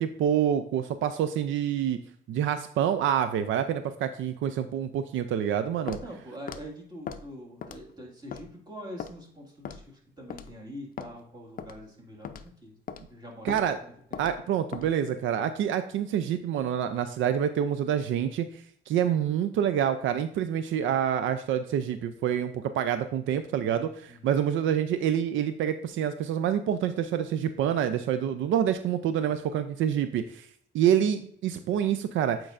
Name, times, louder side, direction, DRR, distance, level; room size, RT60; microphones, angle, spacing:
voice 1, 0.0-2.0 2.3-6.0 13.4-13.8 14.2-30.5 30.7-32.5, right 9 dB, 80° right, 10 dB, 0.4 m, -27 dB
voice 2, 5.8-12.8 13.1-14.2 24.1-24.3, equal, 20° right, -1 dB, 1.9 m, -44 dB
Walk footsteps, 5.9-6.1 6.5-6.6 7.1-7.2 7.6-7.9 8.3-8.5 9.0-9.1 9.7-9.9 10.3-10.5 11.0-11.1 11.6-11.8 12.2-12.5 12.9-13.0 13.5-13.7 14.1-14.3 14.7-14.9, left 7 dB, 45° left, 0.5 m, -38 dB
8.4 x 4.5 x 2.5 m, 0.62 s
cardioid pair, 90°, 20 cm